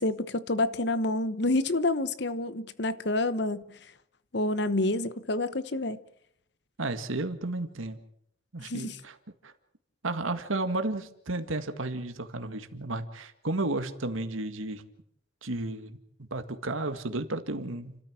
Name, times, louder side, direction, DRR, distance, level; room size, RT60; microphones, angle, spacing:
voice 1, 0.0-3.8 4.3-6.0 8.6-9.0, left 2 dB, 55° left, 1.1 m, -28 dB
voice 2, 6.8-8.0 8.5-9.2 9.4-9.5 10.0-14.8 15.4-16.0 16.3-18.0, right 2 dB, 90° right, 1.9 m, -33 dB
30.0 x 13.5 x 7.5 m
head